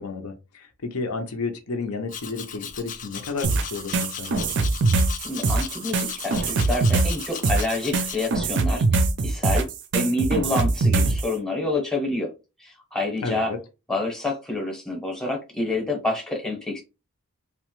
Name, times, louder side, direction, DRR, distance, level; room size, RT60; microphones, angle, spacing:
voice 1, 0.0-4.5 13.2-13.6, left 3 dB, 75° left, 0.7 m, -32 dB
Domestic sounds home sounds, 2.1-8.3, left 8 dB, 35° left, 0.3 m, -37 dB
sound 1, 3.4-11.3, right 3 dB, 55° right, 0.4 m, -22 dB
voice 2, 5.2-9.7 9.9-12.3 12.6-13.5 13.9-16.8, left 2 dB, 5° left, 0.8 m, -28 dB
2.9 x 2.1 x 3.0 m
head